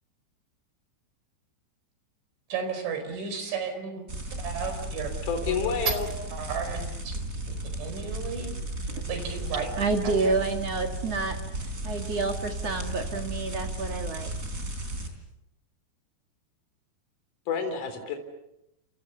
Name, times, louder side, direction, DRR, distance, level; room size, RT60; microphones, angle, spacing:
voice 1, 2.5-4.1 4.4-5.1 6.3-7.2 7.8-8.6 9.1-9.7 10.0-10.4, right 6 dB, 80° right, 7 dB, 7.1 m, -33 dB
sound 1, 4.1-15.1, right 1 dB, 20° right, 3.7 m, -34 dB
voice 2, 5.2-6.1 17.5-18.2, left 5 dB, 45° left, 6 dB, 4.9 m, -29 dB
voice 3, 9.8-14.3, right 3 dB, 45° right, 4 dB, 2.3 m, -29 dB
29.5 x 28.5 x 6.9 m, 0.87 s
omnidirectional pair, 5.4 m